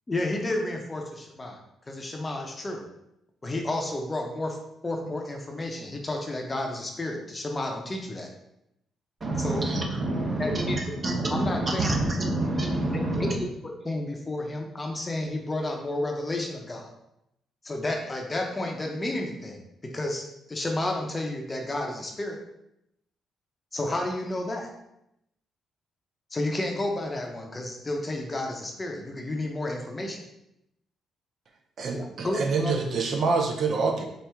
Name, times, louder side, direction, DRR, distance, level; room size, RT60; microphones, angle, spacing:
voice 1, 0.1-1.6 1.9-2.8 3.4-4.6 4.8-8.3 9.4-9.7 10.2-10.8 11.3-11.8 13.2-13.4 13.8-16.9 17.6-22.4 23.7-24.8 26.3-30.2 31.9-32.7, left 1 dB, 25° left, 2 dB, 0.7 m, -31 dB
voice 2, 9.2-13.4, right 2 dB, 35° right, 1 dB, 0.9 m, -27 dB
voice 3, 31.8-34.1, right 4 dB, 55° right, 2 dB, 0.5 m, -26 dB
4.4 x 2.5 x 3.5 m, 0.82 s
cardioid pair, 90°, 0 cm